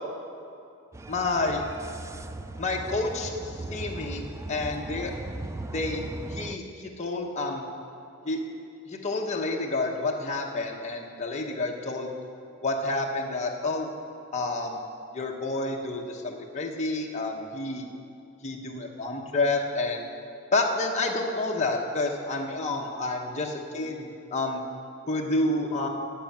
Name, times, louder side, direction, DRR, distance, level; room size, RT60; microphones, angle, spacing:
sound 1, 0.9-6.6, right 2 dB, 15° right, 0.3 m, -38 dB
voice 1, 1.1-1.6 2.6-5.1 5.7-7.6 8.2-8.4 8.8-12.1 12.6-13.9 14.3-14.8 15.1-17.9 18.4-20.0 20.5-24.6 25.1-25.9, left 2 dB, 35° left, -1 dB, 1.0 m, -29 dB
11.5 x 8.2 x 8.7 m, 2.6 s
head